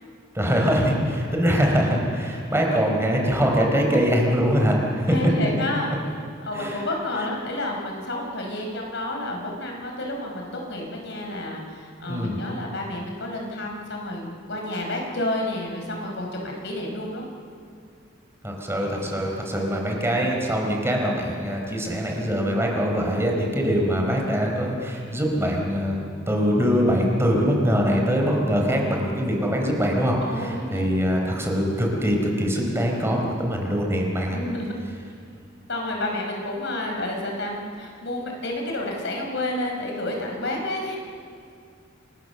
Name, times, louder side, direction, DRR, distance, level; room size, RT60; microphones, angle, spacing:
voice 1, 0.3-5.1 6.5-6.8 12.1-12.4 18.4-34.4, equal, 15° right, 0 dB, 4.7 m, -23 dB
voice 2, 3.7-4.0 5.1-5.9 6.5-17.3 23.1-23.3 30.2-30.8 34.3-34.7 35.7-41.0, left 1 dB, 65° left, 1 dB, 5.3 m, -30 dB
28.5 x 25.5 x 7.1 m, 2.3 s
head